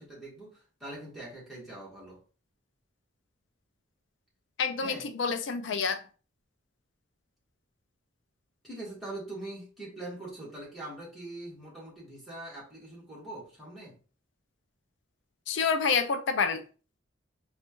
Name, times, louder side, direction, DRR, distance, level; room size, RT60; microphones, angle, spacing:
voice 1, 0.0-2.2 4.8-5.1 8.6-14.0, right 2 dB, ahead, 1.6 m, -43 dB
voice 2, 4.6-6.0 15.5-16.6, left 5 dB, 70° left, 0.4 m, -28 dB
4.2 x 2.4 x 2.9 m
head